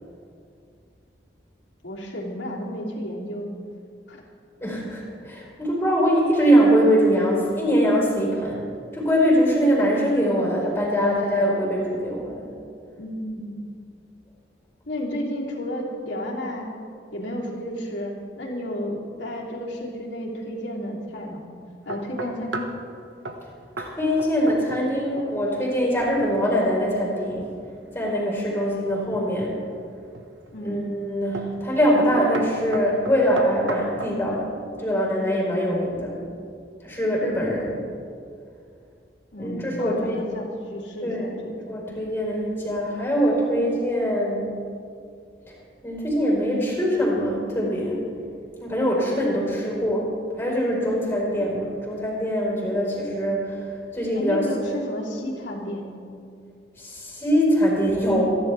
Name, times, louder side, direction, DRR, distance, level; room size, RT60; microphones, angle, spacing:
voice 1, 1.8-3.5 4.1-4.2 13.0-13.5 14.9-16.7 17.1-21.4 21.8-22.8 30.5-31.0 39.3-41.6 54.1-55.9, equal, 85° left, -3 dB, 3.1 m, -32 dB
voice 2, 4.6-12.3 23.8-27.5 27.9-29.6 30.6-34.5 34.8-36.1 36.8-37.8 39.4-40.2 41.0-41.3 41.6-44.5 45.8-48.0 48.6-50.1 50.4-54.5 56.8-58.3, equal, 15° left, -5 dB, 4.4 m, -23 dB
sound 1, 21.9-22.8 23.2-23.5 23.8-23.9 24.2-24.9 25.2-25.5 28.9-29.5 30.1-30.6 31.3-31.6 31.9-32.1 32.3-34.2, right 2 dB, 85° right, 1.2 m, -34 dB
27.0 x 11.0 x 3.4 m, 2.3 s
head